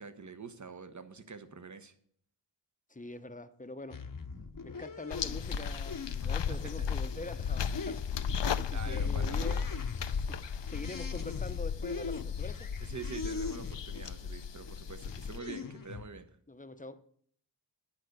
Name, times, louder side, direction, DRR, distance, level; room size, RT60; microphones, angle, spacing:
voice 1, 0.0-1.9 4.4-4.5 6.2-6.8 8.7-9.7 12.8-16.3, right 5 dB, 40° right, 1.0 m, -46 dB
voice 2, 2.9-4.0 4.6-8.0 8.6-9.6 10.2-10.4 10.7-12.7 16.5-17.0, left 2 dB, 15° left, 0.8 m, -44 dB
sound 1, 3.9-14.1 14.6-16.1, left 4 dB, 45° left, 0.9 m, -43 dB
sound 2, 5.1-15.4, left 6 dB, 70° left, 0.6 m, -35 dB
11.0 x 5.2 x 8.0 m
wide cardioid pair, 55°, 45 cm